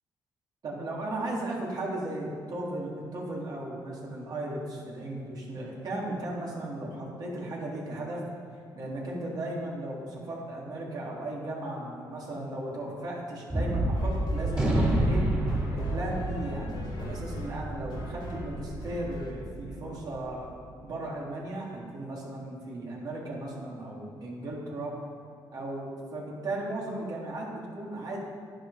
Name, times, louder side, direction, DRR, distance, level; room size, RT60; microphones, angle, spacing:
voice 1, 0.6-8.2 8.7-15.2 15.7-24.9 25.5-28.2, right 1 dB, 55° right, -4 dB, 3.5 m, -36 dB
Gunshot gunfire, 13.5-20.1, right 1 dB, 15° right, 3.0 m, -29 dB
sound 1, 13.9-19.3, left 1 dB, 75° left, 2.8 m, -44 dB
11.5 x 10.0 x 5.2 m, 2.4 s
cardioid pair, 110°, 8 cm